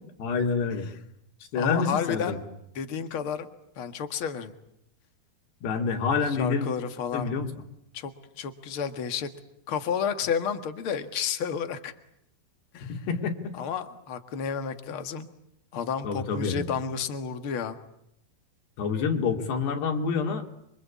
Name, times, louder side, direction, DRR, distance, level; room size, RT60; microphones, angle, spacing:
voice 1, 0.2-0.9 1.5-2.4 5.6-6.7 7.1-7.5 12.9-13.5 16.0-16.7 18.8-20.4, left 5 dB, 80° left, 4 dB, 4.7 m, -27 dB
voice 2, 1.5-2.4 2.8-3.5 3.8-4.5 6.3-7.3 7.9-8.1 8.4-9.3 9.7-11.9 12.7-13.0 13.5-15.3 15.7-17.8, left 7 dB, 50° left, 8 dB, 1.7 m, -31 dB
28.0 x 25.0 x 8.5 m, 0.78 s
omnidirectional pair, 4.7 m